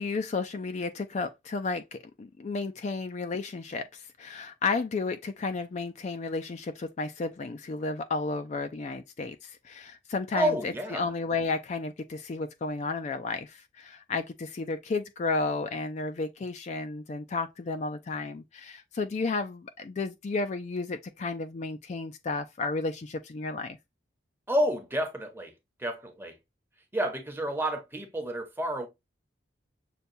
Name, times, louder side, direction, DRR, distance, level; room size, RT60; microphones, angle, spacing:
voice 1, 0.0-23.8, left 3 dB, 40° left, 0.3 m, -32 dB
voice 2, 10.3-11.1 24.5-25.5 25.8-26.4 26.9-28.9, equal, 10° right, 0.8 m, -30 dB
6.7 x 2.3 x 2.6 m
head